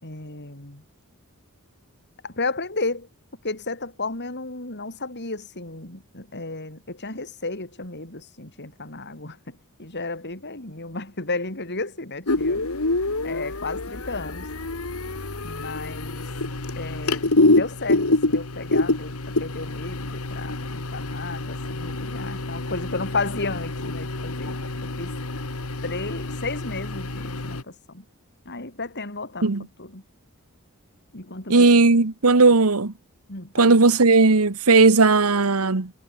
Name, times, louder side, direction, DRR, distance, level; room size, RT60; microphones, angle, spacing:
voice 1, 0.0-0.8 2.2-3.1 3.4-12.6 13.2-14.5 15.4-16.3 16.8-25.2 25.8-28.0 28.5-30.0 31.1-31.7 33.3-33.8, left 3 dB, 50° left, 5.2 m, -33 dB
sound 1, 12.3-27.6, left 2 dB, 70° left, 2.0 m, -26 dB
voice 2, 31.5-32.9 33.6-35.9, right 3 dB, 75° right, 1.3 m, -16 dB
head